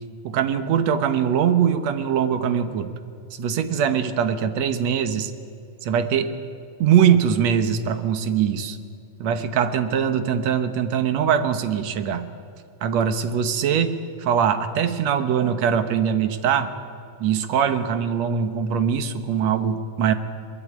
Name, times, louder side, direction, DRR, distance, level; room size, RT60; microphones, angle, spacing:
voice 1, 0.2-2.9 3.3-5.3 5.8-6.3 6.8-8.8 9.2-12.3 12.8-16.7 17.2-20.1, right 8 dB, 70° right, 10 dB, 2.3 m, -22 dB
22.5 x 21.5 x 8.6 m, 2.5 s
omnidirectional pair, 3.3 m